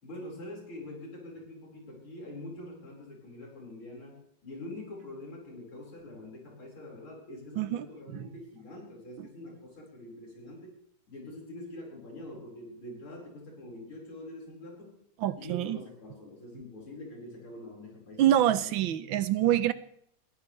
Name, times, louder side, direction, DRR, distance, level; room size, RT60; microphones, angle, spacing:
voice 1, 0.0-10.7 11.1-15.1 15.4-18.7, left 1 dB, 75° left, -2 dB, 5.8 m, -45 dB
voice 2, 7.6-8.3 9.2-9.3 15.2-15.8 18.2-19.7, right 12 dB, 70° right, 14 dB, 1.5 m, -26 dB
21.0 x 14.5 x 3.3 m, 0.70 s
omnidirectional pair, 2.4 m